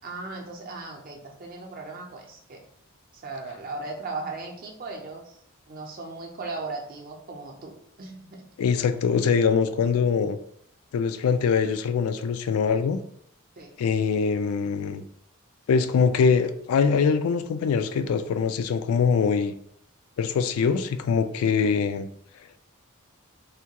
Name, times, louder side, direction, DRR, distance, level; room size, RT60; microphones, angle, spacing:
voice 1, 0.0-2.6 3.1-8.5 13.6-13.7, right 3 dB, 40° right, 1 dB, 0.5 m, -37 dB
voice 2, 8.6-10.4 10.9-13.0 13.8-15.0 15.7-19.5 20.2-22.1, left 6 dB, 85° left, 11 dB, 0.3 m, -23 dB
3.4 x 2.2 x 2.8 m, 0.67 s
head